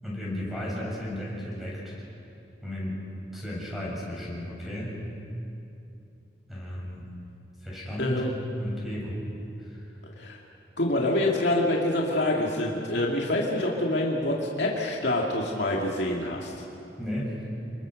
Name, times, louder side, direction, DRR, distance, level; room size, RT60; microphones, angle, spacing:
voice 1, 0.0-2.0 2.6-3.0 3.3-5.0 6.5-7.0 7.6-8.3 8.6-9.2 9.6-9.8 17.0-17.3, equal, ahead, -5 dB, 7.4 m, -34 dB
voice 2, 8.0-8.3 10.2-10.4 10.8-16.5, left 1 dB, 70° left, -2 dB, 2.5 m, -26 dB
28.5 x 21.5 x 6.6 m, 2.7 s
head